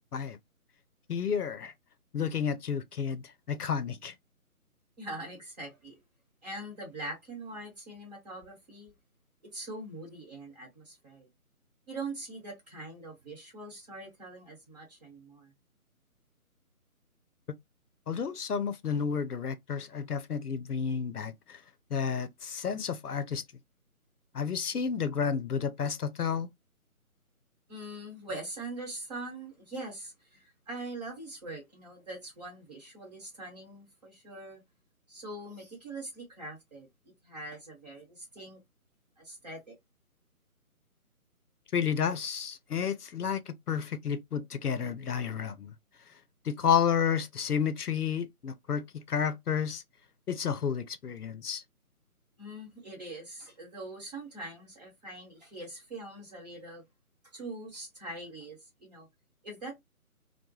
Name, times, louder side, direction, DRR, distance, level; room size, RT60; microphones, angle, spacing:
voice 1, 1.1-1.7 2.1-4.1 18.1-21.6 21.9-23.4 24.3-26.5 41.7-45.7 46.4-49.8 50.3-51.6, left 7 dB, 85° left, 0.6 m, -31 dB
voice 2, 5.0-5.9 6.4-8.9 9.5-11.3 11.9-15.5 27.7-34.6 35.1-36.9 37.2-38.6 39.2-39.8 52.4-56.8 57.3-59.1 59.4-59.7, right 2 dB, 30° right, 1.2 m, -43 dB
2.2 x 2.2 x 2.9 m
figure-of-eight pair, 150°, 45 cm